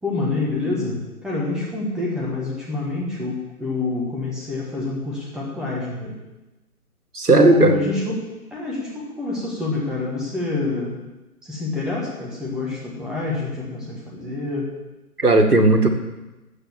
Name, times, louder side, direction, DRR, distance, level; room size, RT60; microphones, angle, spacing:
voice 1, 0.0-6.2 7.3-11.0 11.4-14.7, left 3 dB, ahead, -5 dB, 1.3 m, -27 dB
voice 2, 7.1-7.8 15.2-15.9, right 2 dB, 85° right, 5 dB, 2.1 m, -15 dB
13.0 x 8.1 x 7.3 m, 1.1 s
figure-of-eight pair, 145°, 45 cm